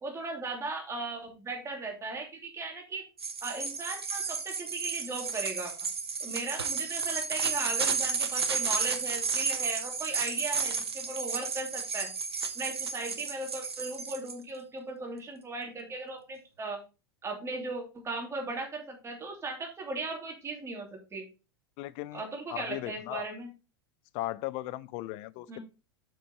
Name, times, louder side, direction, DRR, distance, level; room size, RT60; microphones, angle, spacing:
voice 1, 0.0-3.0 3.4-5.7 6.2-12.1 12.5-16.8 17.2-21.2 22.1-23.5 25.5-25.6, right 3 dB, 20° right, 3.0 m, -37 dB
sound 1, 3.2-14.3, right 5 dB, 85° right, 1.1 m, -32 dB
voice 2, 21.8-22.2 22.5-23.3 24.1-25.6, left 17 dB, 45° left, 0.6 m, -37 dB
7.1 x 6.0 x 4.2 m
hypercardioid pair, 90°, 13 cm